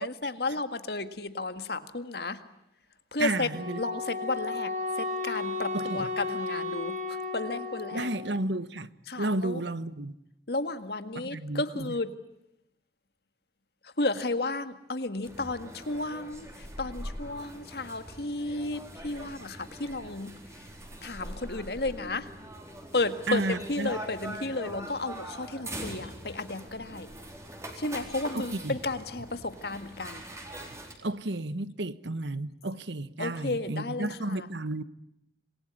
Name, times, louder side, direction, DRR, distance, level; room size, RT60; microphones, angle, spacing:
voice 1, 0.0-2.4 3.1-3.5 3.8-8.1 9.1-9.6 10.5-12.1 13.8-20.7 21.0-22.3 22.9-27.1 27.8-30.2 33.2-34.5, left 2 dB, 60° left, 1.9 m, -33 dB
voice 2, 3.2-3.8 5.7-6.1 7.9-8.9 9.2-10.1 11.2-11.9 23.3-23.9 28.3-28.7 31.0-34.8, right 2 dB, 80° right, 1.2 m, -32 dB
Wind instrument woodwind instrument, 3.5-8.3, left 3 dB, 45° right, 5.6 m, -34 dB
sound 1, 15.2-30.9, right 1 dB, 15° right, 4.3 m, -43 dB
27.5 x 21.5 x 9.7 m
head